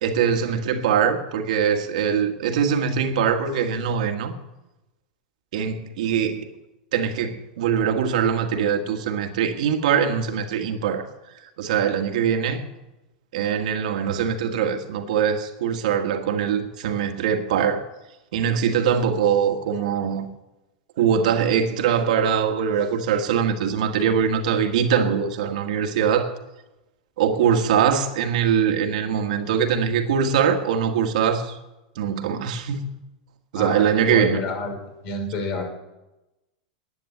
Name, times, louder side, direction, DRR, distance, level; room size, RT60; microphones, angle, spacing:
voice 1, 0.0-4.4 5.5-6.5 6.9-11.1 11.6-12.6 13.3-17.9 18.3-20.3 21.0-26.3 27.2-31.6 32.0-32.9 33.5-34.4, right 7 dB, 75° right, 1.7 m, -22 dB
voice 2, 33.6-34.7 35.0-35.6, left 2 dB, 50° left, 5.2 m, -29 dB
11.0 x 9.0 x 8.7 m
hypercardioid pair, 120°, 4 cm